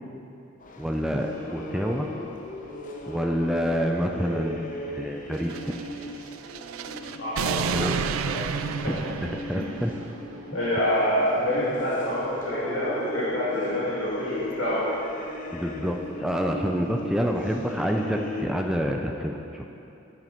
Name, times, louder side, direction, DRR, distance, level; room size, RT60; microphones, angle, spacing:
sound 1, 0.6-18.4, left 1 dB, 40° left, 0.8 m, -38 dB
voice 1, 0.8-2.1 3.1-5.6 7.7-7.9 8.8-9.9 15.5-19.6, equal, ahead, 1 dB, 0.4 m, -27 dB
sound 2, 5.4-10.1, right 7 dB, 80° right, 0.3 m, -32 dB
voice 2, 7.2-8.4 8.8-9.1 9.6-9.7 10.5-14.9, equal, 70° left, -10 dB, 2.0 m, -27 dB
9.1 x 7.4 x 5.3 m, 2.8 s
head